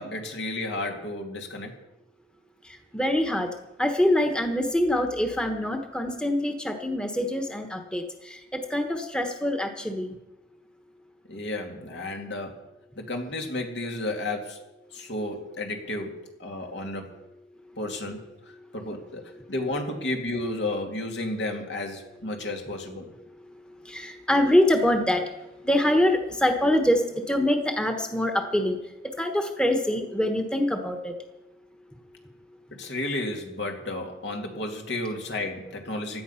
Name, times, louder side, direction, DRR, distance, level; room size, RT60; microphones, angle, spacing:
voice 1, 0.0-1.7 11.3-12.6 13.0-14.6 14.9-17.1 17.8-18.2 18.7-23.1 32.8-36.2, left 2 dB, 75° left, 2 dB, 2.4 m, -32 dB
voice 2, 2.9-3.5 3.8-10.1 23.9-25.3 25.6-28.8 29.2-31.1, left 1 dB, 5° left, 5 dB, 1.1 m, -24 dB
16.5 x 11.5 x 5.7 m, 0.98 s
head